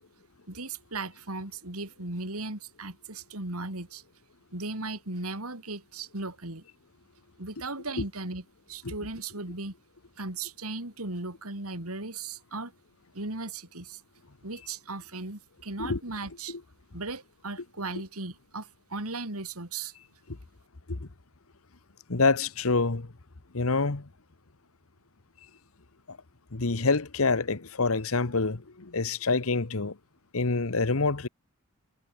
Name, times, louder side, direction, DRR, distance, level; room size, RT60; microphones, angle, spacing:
voice 1, 0.5-4.0 4.5-6.6 7.4-9.7 10.2-12.7 13.1-14.0 14.4-16.6 16.9-19.9, right 3 dB, 85° right, 4.2 m, -37 dB
voice 2, 22.1-23.1 23.5-24.1 26.1-26.2 26.5-29.9 30.3-31.3, left 3 dB, 75° left, 1.2 m, -26 dB
head